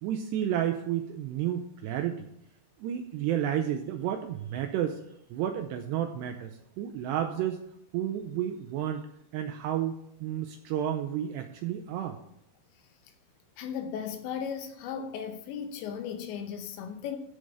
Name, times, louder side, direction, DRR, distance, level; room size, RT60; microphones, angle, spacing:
voice 1, 0.0-2.3 2.8-5.0 5.3-7.6 7.9-9.0 9.3-12.2, right 10 dB, 80° right, 2.5 m, -31 dB
voice 2, 13.6-17.2, left 7 dB, 75° left, 3.1 m, -36 dB
13.0 x 5.3 x 6.7 m
omnidirectional pair, 5.5 m